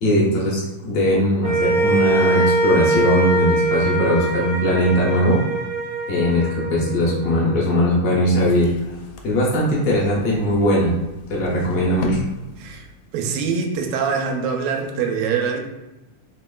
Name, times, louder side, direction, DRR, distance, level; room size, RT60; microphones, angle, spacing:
voice 1, 0.0-5.4 6.1-8.7 9.2-10.9 11.3-12.2, equal, 70° left, -5 dB, 1.5 m, -19 dB
sound 1, 1.4-7.8, right 2 dB, 70° right, 1.6 m, -22 dB
sound 2, 8.3-13.3, left 4 dB, 85° left, 2.1 m, -37 dB
voice 2, 12.6-12.9 13.1-15.6, right 6 dB, 90° right, 2 dB, 2.1 m, -24 dB
4.8 x 2.9 x 2.2 m, 1.1 s
omnidirectional pair, 3.6 m